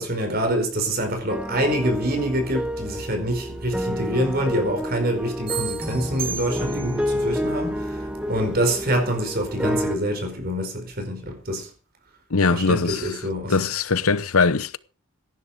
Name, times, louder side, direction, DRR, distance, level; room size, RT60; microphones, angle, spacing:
voice 1, 0.0-11.7 12.5-13.6, right 1 dB, 40° right, 4.7 m, -26 dB
sound 1, 1.3-10.0, equal, 5° right, 1.4 m, -29 dB
sound 2, 5.5-7.1, right 8 dB, 25° right, 6.9 m, -33 dB
voice 2, 12.3-13.1 13.5-14.8, left 4 dB, 80° left, 0.9 m, -21 dB
17.0 x 11.5 x 5.1 m
head